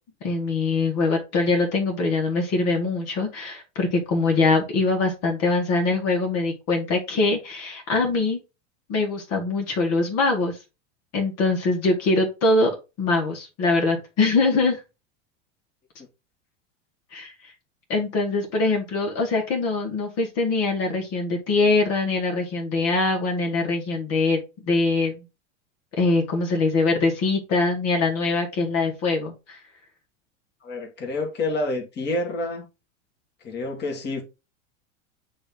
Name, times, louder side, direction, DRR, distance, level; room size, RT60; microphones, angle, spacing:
voice 1, 0.2-8.4 8.9-10.6 11.1-14.8 17.1-17.3 17.9-25.2 26.0-29.6, left 3 dB, 45° left, 1.9 m, -23 dB
voice 2, 30.6-32.7 33.4-34.2, left 2 dB, 30° left, 2.0 m, -28 dB
8.6 x 2.9 x 3.8 m
hypercardioid pair, 105°, 36 cm